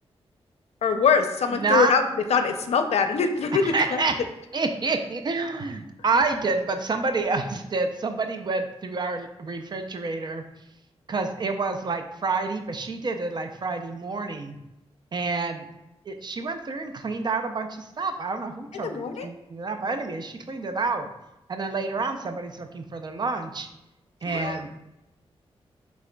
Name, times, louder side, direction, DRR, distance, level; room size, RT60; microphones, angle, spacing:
voice 1, 0.8-2.0 2.3-4.0 18.7-19.3 24.3-24.6, left 5 dB, 80° left, 7 dB, 0.5 m, -23 dB
voice 2, 1.5-1.9 3.6-4.1 4.5-10.4 11.1-14.6 15.1-15.7 16.0-21.1 21.5-23.7 24.2-24.7, right 3 dB, 45° right, 6 dB, 0.4 m, -28 dB
6.1 x 3.5 x 2.2 m, 0.91 s
wide cardioid pair, 90°, 11 cm